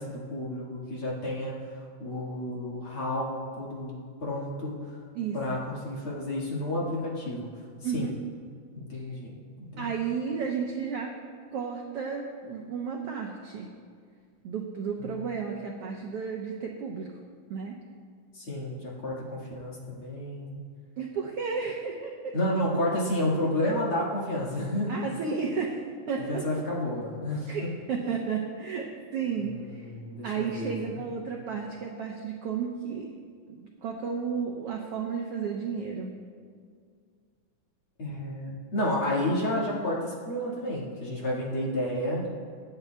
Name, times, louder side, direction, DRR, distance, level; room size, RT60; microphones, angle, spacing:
voice 1, 0.0-4.9 5.3-7.5 7.8-8.1 8.7-9.9 15.0-15.1 18.3-20.6 22.3-24.9 26.3-27.7 29.4-31.0 38.0-42.3, left 1 dB, 45° left, -5 dB, 2.3 m, -31 dB
voice 2, 5.1-5.6 7.8-8.1 8.9-9.0 9.8-11.1 11.5-13.7 14.4-17.1 17.5-17.8 21.0-22.4 24.9-25.8 26.1-26.5 27.5-29.9 30.2-33.1 33.5-36.1, right 6 dB, 75° right, 0 dB, 1.4 m, -33 dB
25.0 x 9.5 x 2.3 m, 2.1 s
omnidirectional pair, 3.7 m